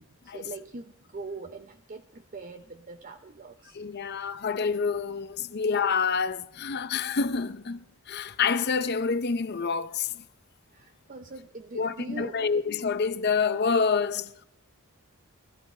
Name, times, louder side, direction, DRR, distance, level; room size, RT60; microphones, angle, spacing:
voice 1, 0.3-3.8 10.7-12.4, right 3 dB, 35° right, 0.6 m, -42 dB
voice 2, 3.7-10.2 11.7-14.3, left 5 dB, 45° left, 0.6 m, -27 dB
19.5 x 14.5 x 4.3 m
head